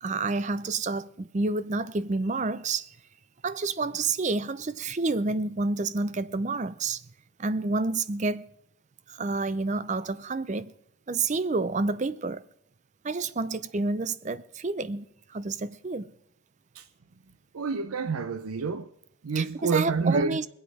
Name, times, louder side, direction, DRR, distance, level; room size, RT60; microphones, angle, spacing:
voice 1, 0.0-2.9 3.4-7.0 7.4-8.4 9.1-10.7 11.1-12.4 13.0-16.1 19.3-20.5, right 3 dB, 35° right, 0.5 m, -29 dB
voice 2, 17.5-18.9 19.2-20.4, right 4 dB, 85° right, 0.6 m, -28 dB
23.0 x 8.1 x 4.8 m
head